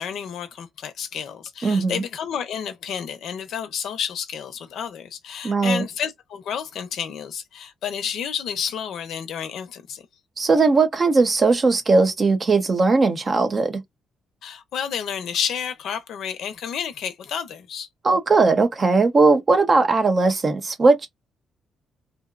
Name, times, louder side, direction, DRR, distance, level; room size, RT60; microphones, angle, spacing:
voice 1, 0.0-10.1 14.4-17.9, left 8 dB, 75° left, 0.6 m, -30 dB
voice 2, 1.6-2.0 5.4-5.8 10.4-13.8 18.0-21.1, right 3 dB, 35° right, 0.7 m, -18 dB
2.8 x 2.1 x 2.4 m
cardioid pair, 90°, 0 cm